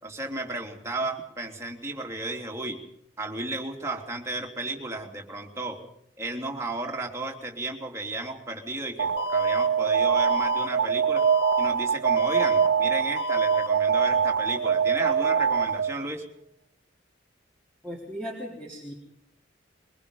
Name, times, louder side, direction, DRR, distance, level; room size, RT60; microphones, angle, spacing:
voice 1, 0.0-2.8 3.2-5.8 6.2-11.3 11.6-16.2, right 2 dB, 15° right, 0 dB, 3.2 m, -34 dB
Alarm, 9.0-16.1, right 7 dB, 75° right, 0.8 m, -24 dB
Alarm 2, 9.2-9.7 10.2-10.7 11.2-11.7 12.2-12.7 13.2-13.7, left 4 dB, 65° left, 1.7 m, -32 dB
voice 2, 17.8-18.9, equal, 5° left, -2 dB, 3.6 m, -37 dB
23.5 x 22.5 x 5.5 m, 0.73 s
head